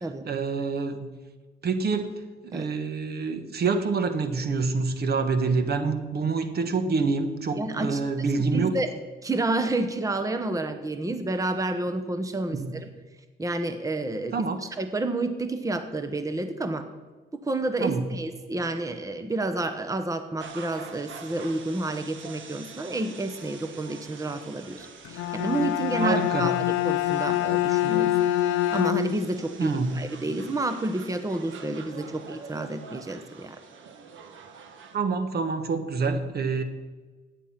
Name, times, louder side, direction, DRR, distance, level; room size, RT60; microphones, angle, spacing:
voice 1, 0.3-1.1 1.6-8.7 12.5-12.7 14.3-14.6 17.8-18.1 26.0-26.5 29.6-30.0 34.9-36.6, right 4 dB, 55° right, 9 dB, 1.4 m, -27 dB
voice 2, 7.5-8.0 8.4-8.9 9.2-12.9 13.4-16.8 17.4-28.2 28.7-33.6, right 2 dB, 15° right, 9 dB, 1.0 m, -30 dB
sound 1, 20.4-35.0, right 5 dB, 75° right, 1.6 m, -46 dB
Bowed string instrument, 25.0-29.3, left 14 dB, 90° left, 0.5 m, -25 dB
14.0 x 9.3 x 5.9 m, 1.3 s
cardioid pair, 90°, 20 cm